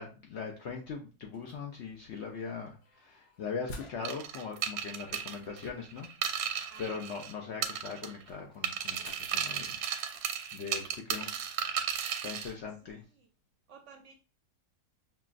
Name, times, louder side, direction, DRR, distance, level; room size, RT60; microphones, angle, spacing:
voice 1, 0.0-9.8 10.5-11.5 12.1-13.0, left 5 dB, 65° left, 1 dB, 0.7 m, -40 dB
sound 1, 1.3-4.4 4.7-4.8 5.1-5.2 5.4-9.6 10.1-11.4, left 3 dB, 85° left, 1.6 m, -58 dB
sound 2, 4.0-7.3 7.6-8.3 8.6-12.5, right 8 dB, 85° right, 1.2 m, -35 dB
voice 2, 6.7-7.0 12.8-13.3 13.7-14.2, right 5 dB, 65° right, 3 dB, 0.8 m, -54 dB
5.7 x 2.3 x 2.4 m, 0.33 s
omnidirectional pair, 1.6 m